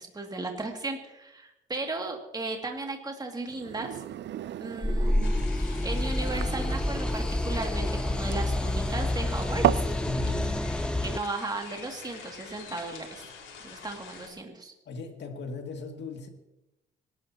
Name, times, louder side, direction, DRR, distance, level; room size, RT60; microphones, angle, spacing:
voice 1, 0.0-4.0 4.6-5.3 5.6-9.8 11.0-13.2 13.6-14.7, right 2 dB, 20° right, 2 dB, 2.4 m, -36 dB
sound 1, 3.5-10.0, right 12 dB, 65° right, 0.5 m, -33 dB
sound 2, 4.8-11.2, left 1 dB, 5° left, 0.6 m, -28 dB
sound 3, 5.2-14.3, left 5 dB, 80° left, 4.7 m, -46 dB
voice 2, 10.0-10.6 14.9-16.3, left 3 dB, 60° left, 4 dB, 2.4 m, -38 dB
25.5 x 12.5 x 2.9 m, 0.93 s
cardioid pair, 90°, 20 cm